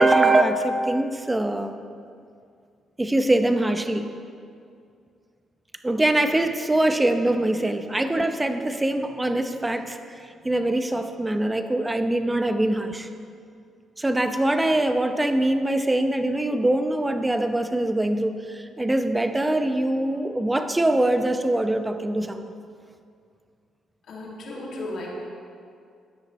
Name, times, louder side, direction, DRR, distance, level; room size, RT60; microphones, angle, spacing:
voice 1, 0.0-1.8 3.0-4.1 5.8-10.0 10.4-13.1 14.0-22.4, right 1 dB, 15° right, 7 dB, 0.7 m, -23 dB
voice 2, 24.1-25.1, left 2 dB, 70° left, -4 dB, 2.3 m, -35 dB
14.0 x 9.5 x 3.1 m, 2.3 s
cardioid pair, 80°, 0 cm